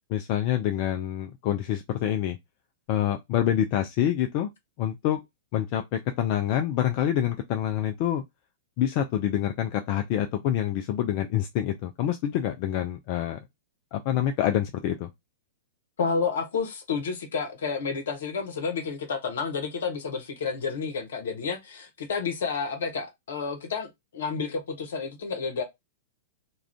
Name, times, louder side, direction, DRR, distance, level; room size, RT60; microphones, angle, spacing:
voice 1, 0.1-2.4 2.9-4.5 4.8-5.2 5.5-8.2 8.8-13.4 13.9-15.1, left 11 dB, 45° left, 0.3 m, -26 dB
voice 2, 16.0-25.6, left 5 dB, 65° left, 0.8 m, -30 dB
2.4 x 2.3 x 3.3 m
figure-of-eight pair, 100°, 0 cm